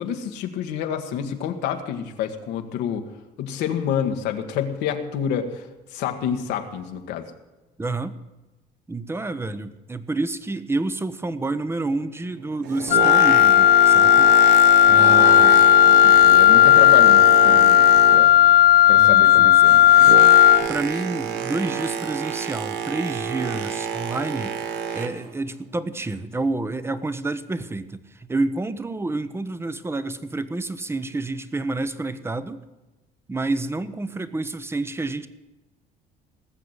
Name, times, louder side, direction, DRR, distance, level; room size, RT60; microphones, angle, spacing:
voice 1, 0.0-3.0 3.4-7.2 15.0-18.3 18.9-19.8 24.9-25.0, left 8 dB, 85° left, 5 dB, 1.7 m, -28 dB
voice 2, 7.8-8.2 8.9-14.3 14.9-15.5 19.0-19.8 20.7-24.5 24.9-32.6 33.3-35.3, right 2 dB, 15° right, 13 dB, 1.0 m, -29 dB
Boat Water vehicle, 12.4-18.6 18.9-25.3 25.9-26.1, right 7 dB, 90° right, 1.3 m, -28 dB
Wind instrument woodwind instrument, 12.9-20.7, left 12 dB, 65° left, 0.5 m, -13 dB
19.0 x 7.5 x 8.2 m, 1.1 s
cardioid pair, 110°, 17 cm